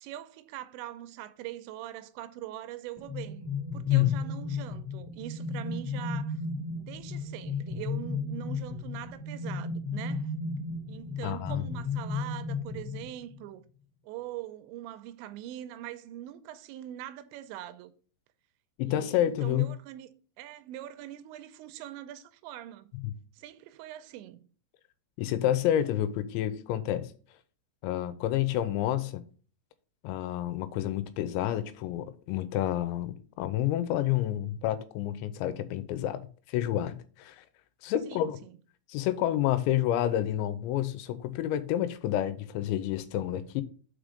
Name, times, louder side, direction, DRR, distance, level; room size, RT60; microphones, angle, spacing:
voice 1, 0.0-6.4 6.8-10.3 10.9-13.6 14.0-17.9 18.9-20.1 20.4-22.9 23.3-24.4 38.1-38.6, right 13 dB, 85° right, 2.9 m, -42 dB
sound 1, 3.0-13.4, left 4 dB, 60° left, 2.0 m, -34 dB
voice 2, 3.9-4.2 11.2-11.6 18.8-19.7 23.0-23.1 25.2-27.1 27.8-29.2 30.0-36.2 36.5-37.4 37.8-38.4 38.9-43.6, left 12 dB, 85° left, 2.9 m, -29 dB
5.9 x 5.0 x 5.0 m
omnidirectional pair, 5.2 m